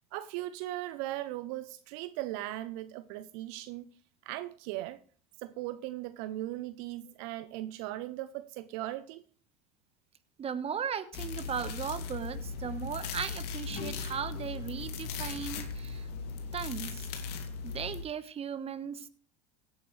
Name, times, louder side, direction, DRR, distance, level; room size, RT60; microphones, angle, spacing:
voice 1, 0.1-3.9 4.3-5.0 5.4-9.2, right 15 dB, 70° right, 0.7 m, -38 dB
voice 2, 10.4-16.1 16.5-17.1 17.6-19.1, right 7 dB, 30° right, 1.3 m, -37 dB
sound 1, 11.1-18.0, left 5 dB, 65° left, 2.5 m, -38 dB
16.5 x 9.3 x 3.3 m
hypercardioid pair, 85°, 19 cm